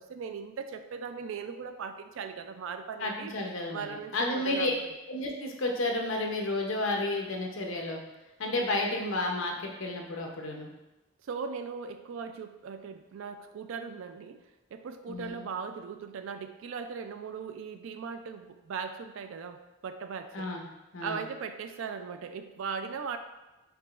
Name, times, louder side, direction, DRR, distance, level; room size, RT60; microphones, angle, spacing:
voice 1, 0.0-3.3 3.7-5.0 11.2-14.4 14.7-20.5 21.0-23.2, right 6 dB, 65° right, 8 dB, 0.3 m, -39 dB
voice 2, 3.0-4.7 5.1-8.0 8.4-10.7 15.1-15.4 20.3-20.6 20.9-21.2, left 2 dB, 65° left, 1 dB, 0.7 m, -31 dB
4.7 x 3.7 x 2.4 m, 1.0 s
head